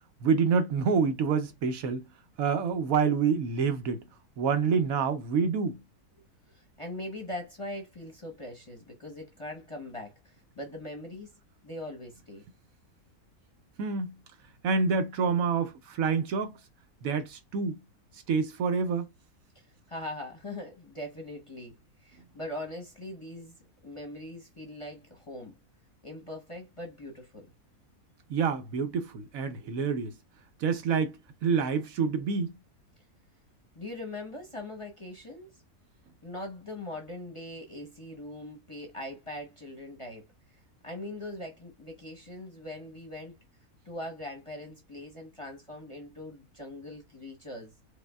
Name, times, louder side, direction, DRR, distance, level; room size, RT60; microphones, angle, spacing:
voice 1, 0.2-2.0 2.4-4.1 4.4-5.8 13.8-14.1 14.6-16.6 17.0-17.8 18.1-19.1 28.3-30.1 30.6-32.5, right 5 dB, 70° right, 1.0 m, -27 dB
voice 2, 6.5-11.3 11.6-12.5 19.5-23.6 23.8-25.6 26.0-27.5 33.7-35.5 36.2-40.3 40.8-43.3 43.8-47.7, left 1 dB, 25° left, 0.8 m, -41 dB
5.1 x 2.1 x 2.2 m
omnidirectional pair, 1.6 m